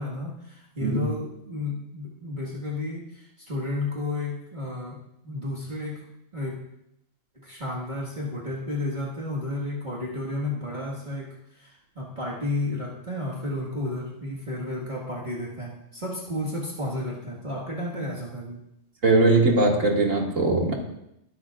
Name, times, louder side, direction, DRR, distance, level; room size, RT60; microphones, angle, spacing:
voice 1, 0.0-5.0 5.2-6.1 6.3-6.6 7.4-18.6, left 2 dB, 35° right, -5 dB, 2.0 m, -32 dB
voice 2, 19.0-20.8, right 2 dB, 75° right, -1 dB, 2.6 m, -20 dB
22.0 x 12.0 x 2.5 m, 0.82 s
omnidirectional pair, 1.3 m